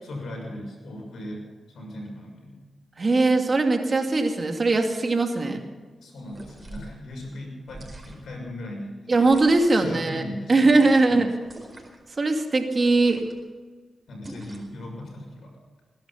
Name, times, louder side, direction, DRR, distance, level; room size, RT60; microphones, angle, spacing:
voice 1, 0.0-1.5 1.7-2.6 6.0-9.1 9.7-10.7 11.1-11.3 14.1-15.5, left 1 dB, 80° left, 0 dB, 6.4 m, -38 dB
voice 2, 3.0-5.6 9.1-10.2 10.5-11.3 12.2-13.2, right 3 dB, 45° right, 4 dB, 2.5 m, -20 dB
sound 1, 6.2-6.9 7.7-8.4 9.2-9.8 10.7-11.2 11.4-12.0 12.8-13.4 14.2-14.8, right 1 dB, 30° right, 4.5 m, -43 dB
20.5 x 11.5 x 5.9 m, 1.4 s
cardioid pair, 55°, 0 cm